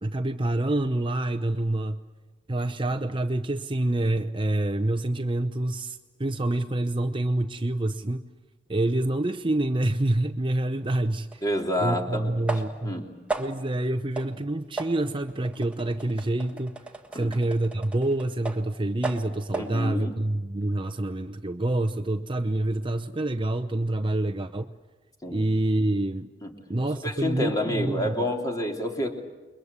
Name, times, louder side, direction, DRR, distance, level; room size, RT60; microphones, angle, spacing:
voice 1, 0.0-2.0 2.5-8.2 8.7-11.4 11.8-12.9 13.4-16.7 17.1-24.7 25.3-26.3 26.7-28.1, right 1 dB, 30° right, 8 dB, 0.8 m, -27 dB
sound 1, 11.3-11.4 12.5-12.9 13.3-13.7 14.2-14.4 14.8-18.7 19.0-19.8, right 3 dB, 5° right, 1.6 m, -35 dB
voice 2, 11.4-12.3 12.8-13.1 17.1-17.3 19.5-20.2 25.2-25.4 26.4-26.5 27.0-29.1, left 1 dB, 20° left, 2 dB, 3.3 m, -28 dB
29.0 x 22.5 x 8.2 m, 1.2 s
head